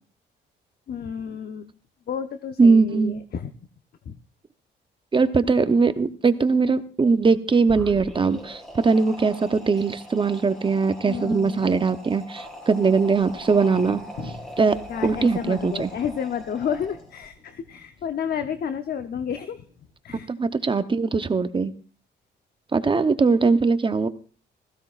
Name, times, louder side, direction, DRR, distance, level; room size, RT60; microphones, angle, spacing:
voice 1, 0.9-1.7 2.1-3.5 4.1-4.2 11.0-11.7 14.9-19.6 20.0-20.3, left 7 dB, 50° left, 9 dB, 0.7 m, -31 dB
voice 2, 2.6-3.2 5.1-14.0 14.6-14.8 15.0-15.9 20.3-21.7 22.7-24.1, right 4 dB, 25° right, 11 dB, 0.8 m, -21 dB
sound 1, 7.6-17.3, equal, 5° left, 3.7 m, -41 dB
sound 2, 12.7-19.9, left 3 dB, 75° left, 3.9 m, -47 dB
16.0 x 15.0 x 2.4 m, 0.38 s
cardioid pair, 90°, 20 cm